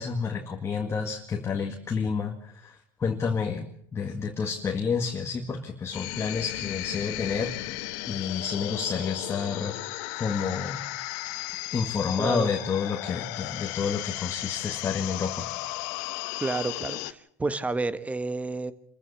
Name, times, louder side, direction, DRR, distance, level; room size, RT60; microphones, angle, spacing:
voice 1, 0.0-10.9 11.7-15.5, left 5 dB, 25° left, 3 dB, 2.0 m, -30 dB
sound 1, 5.9-17.1, left 18 dB, 75° left, 1.2 m, -35 dB
voice 2, 12.2-12.5 16.4-18.7, right 3 dB, 15° right, 12 dB, 1.3 m, -30 dB
26.5 x 15.0 x 7.1 m, 0.68 s
supercardioid pair, 115°, 10 cm